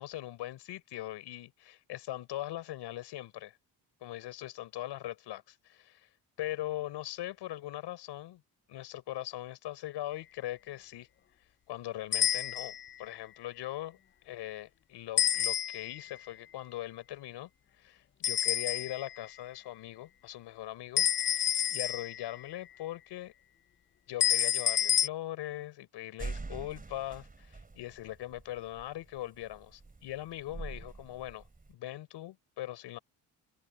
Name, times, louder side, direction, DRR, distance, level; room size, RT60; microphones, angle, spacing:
voice 1, 0.0-3.5 4.0-6.1 6.4-8.4 8.7-11.1 11.7-14.0 14.2-17.5 17.8-23.3 24.1-31.4 31.7-33.0, left 14 dB, 85° left, 6.4 m, -41 dB
sound 1, 12.1-12.9 15.2-16.0 18.2-19.2 21.0-22.4 24.2-25.1, left 10 dB, 30° left, 0.4 m, -29 dB
sound 2, 26.2-31.7, right 3 dB, 20° right, 3.7 m, -44 dB
cardioid pair, 95°, 41 cm